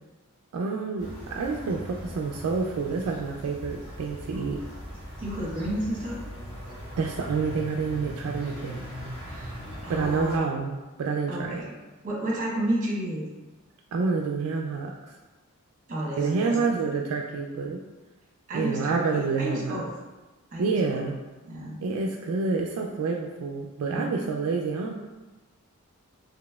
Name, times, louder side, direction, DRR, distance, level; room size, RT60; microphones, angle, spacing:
voice 1, 0.5-4.6 7.0-8.8 9.9-11.6 13.9-15.1 16.2-17.8 18.5-19.8 20.6-21.2 21.8-24.9, right 4 dB, 75° right, 1 dB, 0.3 m, -28 dB
sound 1, 1.0-10.4, equal, 55° left, 1.1 m, -40 dB
voice 2, 5.2-6.2 9.3-10.5 11.3-11.7 12.0-13.3 15.9-16.9 18.5-19.9 20.5-21.1 21.4-21.8 23.9-24.3, right 1 dB, 35° right, -4 dB, 0.9 m, -32 dB
4.0 x 2.8 x 2.2 m, 1.2 s
head